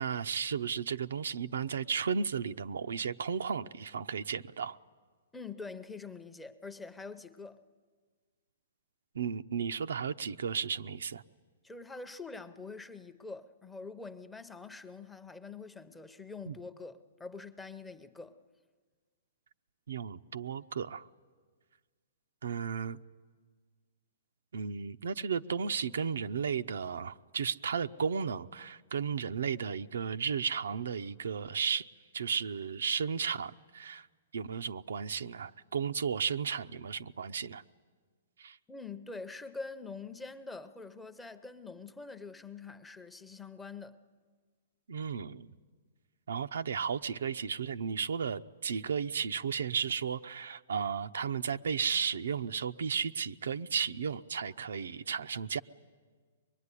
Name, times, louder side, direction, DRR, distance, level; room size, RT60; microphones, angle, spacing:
voice 1, 0.0-4.8 9.1-11.2 16.5-16.6 19.9-21.1 22.4-23.0 24.5-31.9 32.1-34.1 34.3-37.6 38.4-38.6 44.9-45.5 46.3-55.6, right 6 dB, 85° right, 0.7 m, -34 dB
voice 2, 5.3-7.6 11.6-18.4 38.7-44.0, left 4 dB, 5° left, 0.7 m, -45 dB
24.0 x 21.5 x 9.9 m
hypercardioid pair, 160°, 0 cm